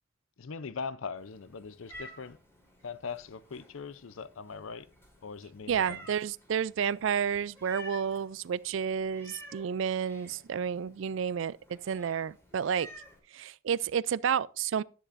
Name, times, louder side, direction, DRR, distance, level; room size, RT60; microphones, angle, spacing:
voice 1, 0.4-2.4 2.8-4.9 5.2-6.1 10.3-10.4, left 5 dB, 80° left, 0.6 m, -41 dB
Meow, 1.2-13.2, equal, 10° left, 3.2 m, -52 dB
voice 2, 5.7-12.9 13.3-14.8, right 7 dB, 70° right, 0.4 m, -31 dB
12.0 x 10.0 x 2.6 m
head